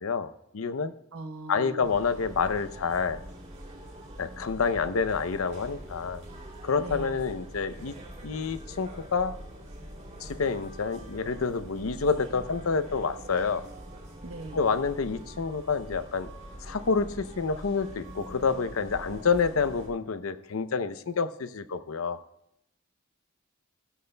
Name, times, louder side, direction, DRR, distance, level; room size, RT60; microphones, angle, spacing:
voice 1, 0.0-0.9 1.5-3.2 4.2-6.2 6.6-8.0 8.2-9.3 10.2-13.6 14.5-16.3 16.6-22.2, left 5 dB, 85° left, 12 dB, 0.7 m, -28 dB
voice 2, 1.1-1.9 6.8-7.2 14.2-14.6, right 2 dB, 90° right, 7 dB, 1.0 m, -40 dB
sound 1, 1.8-19.9, right 1 dB, 35° right, 2.8 m, -44 dB
16.0 x 12.0 x 2.2 m, 0.81 s
head